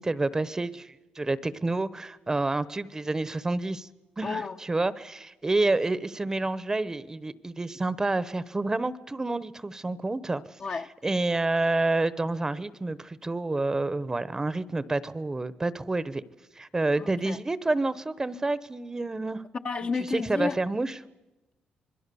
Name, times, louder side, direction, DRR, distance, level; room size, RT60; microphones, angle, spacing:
voice 1, 0.0-3.9 4.2-4.4 4.7-10.4 11.0-16.2 16.5-19.4 20.1-20.9, right 2 dB, 20° right, 0.9 m, -28 dB
voice 2, 4.2-4.6 10.6-10.9 17.0-17.4 19.6-20.6, left 4 dB, 40° left, 1.0 m, -31 dB
26.5 x 21.5 x 7.0 m
cardioid pair, 95°, 3 cm